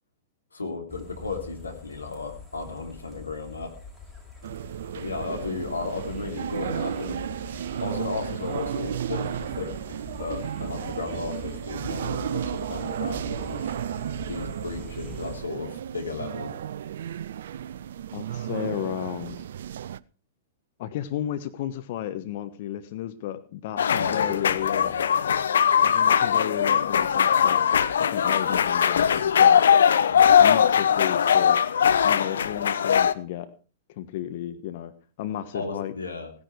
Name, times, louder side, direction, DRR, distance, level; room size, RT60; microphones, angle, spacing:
voice 1, 0.5-3.7 4.9-7.3 7.8-9.8 10.2-13.7 14.3-16.6 23.9-25.0 30.1-30.4 35.5-36.3, left 4 dB, 90° left, 4 dB, 3.2 m, -34 dB
sound 1, 0.9-15.4, left 3 dB, ahead, 6.1 m, -44 dB
sound 2, 4.4-20.0, right 10 dB, 65° right, 0.6 m, -33 dB
voice 2, 18.1-19.4 20.8-24.9 25.8-27.7 28.0-29.6 30.4-31.6 32.0-33.5 33.9-34.9 35.2-35.9, left 12 dB, 55° left, 11 dB, 1.4 m, -33 dB
sound 3, 23.8-33.1, left 8 dB, 75° left, 0.9 m, -20 dB
17.0 x 10.5 x 4.9 m, 0.38 s
hypercardioid pair, 105°, 0 cm